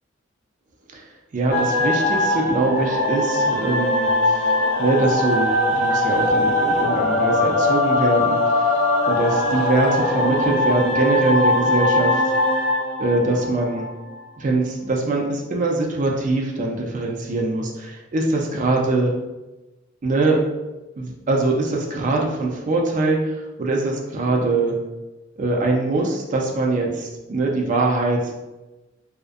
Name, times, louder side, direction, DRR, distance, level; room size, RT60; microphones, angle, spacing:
voice 1, 1.3-4.5 4.8-8.8 9.1-12.2 13.0-13.9 14.4-19.1 20.0-20.4 21.0-24.8 25.4-28.3, right 2 dB, 40° right, 0 dB, 0.4 m, -22 dB
sound 1, 1.5-14.1, left 2 dB, 60° left, 0.4 m, -21 dB
2.4 x 2.1 x 2.5 m, 1.1 s
head